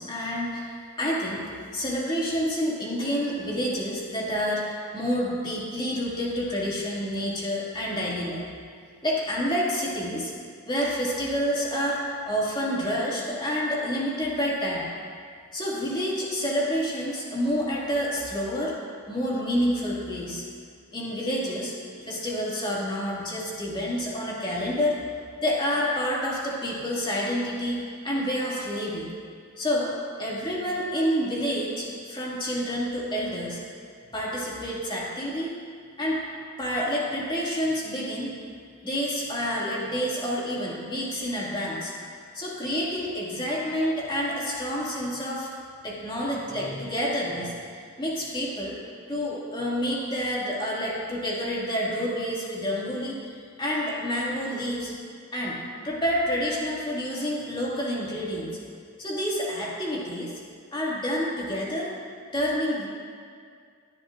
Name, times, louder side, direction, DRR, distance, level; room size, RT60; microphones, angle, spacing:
voice 1, 0.0-8.5 9.0-10.3 10.7-14.9 15.5-18.8 19.1-20.4 20.9-21.7 22.1-25.0 25.4-29.1 29.6-33.6 34.1-35.5 36.0-36.2 36.6-38.4 38.8-42.0 42.3-45.5 45.8-47.5 48.0-48.8 49.1-53.3 53.6-54.9 55.3-55.6 55.8-58.5 59.0-60.4 60.7-61.9 62.3-62.9, equal, 20° left, -5 dB, 2.3 m, -28 dB
19.5 x 10.5 x 2.6 m, 2.2 s
head